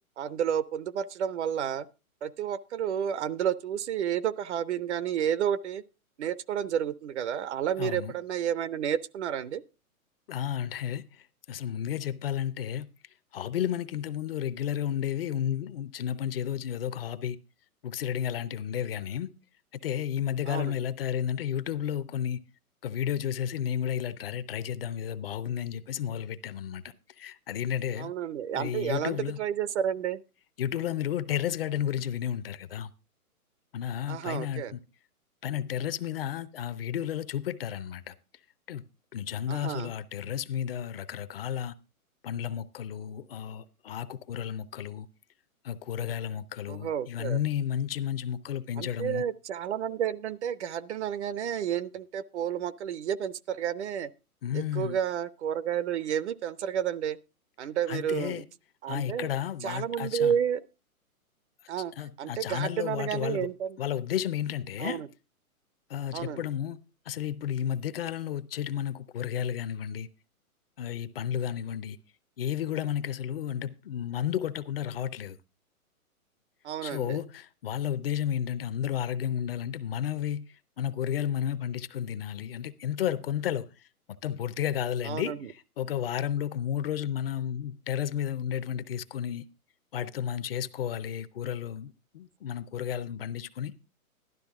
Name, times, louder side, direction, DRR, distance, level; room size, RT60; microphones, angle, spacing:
voice 1, 0.2-1.9 2.2-5.8 6.2-9.6 20.5-20.8 28.0-30.2 34.1-34.8 39.5-39.9 46.7-47.4 48.8-54.1 54.5-57.2 57.6-58.4 58.8-59.3 59.6-60.6 61.7-61.9 62.2-63.8 64.8-65.1 66.1-66.5 76.6-77.2 85.0-85.5, right 9 dB, 50° right, 0.6 m, -31 dB
voice 2, 7.8-8.1 10.3-12.9 13.3-17.4 17.8-19.3 19.8-22.4 22.8-26.8 27.2-28.1 28.5-29.4 30.6-32.9 33.7-34.8 35.4-38.1 38.7-38.8 39.1-41.7 42.2-45.1 45.6-49.2 54.4-55.0 57.9-58.4 58.9-60.3 62.0-63.5 63.8-65.0 65.9-66.8 67.1-70.1 70.8-72.0 72.4-75.4 76.8-83.9 84.2-89.4 89.9-93.7, left 9 dB, 40° left, 0.6 m, -32 dB
12.0 x 11.0 x 3.6 m
hypercardioid pair, 150°, 44 cm